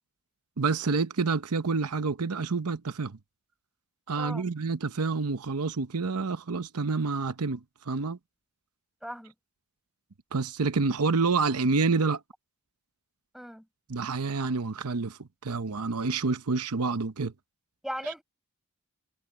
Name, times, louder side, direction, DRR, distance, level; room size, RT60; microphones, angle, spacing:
voice 1, 0.6-3.2 4.1-7.6 7.9-8.2 10.3-12.2 13.9-17.3 18.0-18.1, right 4 dB, 85° right, 0.9 m, -28 dB
voice 2, 4.2-4.5 9.0-9.3 13.3-13.7 17.8-18.2, equal, ahead, 6.4 m, -37 dB
head